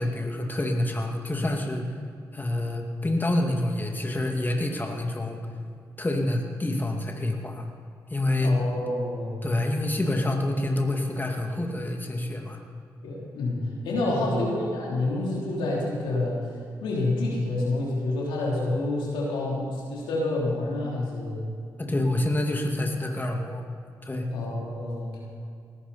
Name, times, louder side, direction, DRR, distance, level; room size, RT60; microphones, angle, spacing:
voice 1, 0.0-1.9 2.3-5.4 6.0-7.7 8.1-8.6 9.4-12.6 14.1-14.4 21.8-23.7 24.0-24.3, left 1 dB, 25° left, 2 dB, 2.4 m, -27 dB
voice 2, 8.4-9.5 13.0-16.4 16.8-21.4 24.3-25.2, left 2 dB, 90° left, -4 dB, 3.5 m, -28 dB
19.5 x 14.0 x 4.3 m, 2.3 s
supercardioid pair, 45°, 8 cm